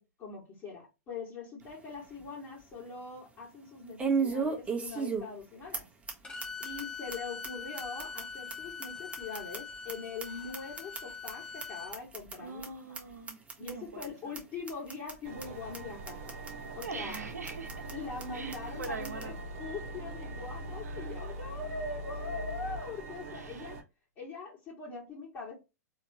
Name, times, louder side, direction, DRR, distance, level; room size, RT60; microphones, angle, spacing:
voice 1, 0.0-5.9 6.6-12.7 13.6-16.4 16.7-17.2 17.9-23.8 24.1-25.6, left 4 dB, 30° left, 1.8 m, -42 dB
sound 1, 1.6-1.7 2.2-2.3 4.0-5.4 5.7-5.8 6.1-6.2 6.4-6.8 7.1-7.2 7.4-7.5 7.8-9.9 10.2-11.3 11.6-11.7 11.9-12.3 12.6-12.7 12.9-13.0 13.3-13.7 14.0-14.1 14.3-14.4 14.7-15.1 15.4-15.5 15.7-15.8 16.1-16.5 16.8-16.9 17.1-17.2 17.5-17.9 18.2-18.3 18.5-18.6 18.8-19.3, right 5 dB, 15° right, 1.3 m, -34 dB
Bowed string instrument, 6.2-11.9, left 6 dB, 10° left, 1.2 m, -43 dB
voice 2, 12.4-14.4 16.8-17.9 18.3-19.4 20.8-21.1 23.3-23.8, right 4 dB, 75° right, 1.0 m, -43 dB
sound 2, 15.2-23.8, right 1 dB, 50° right, 1.1 m, -42 dB
4.1 x 3.1 x 2.8 m
figure-of-eight pair, 100°, 9 cm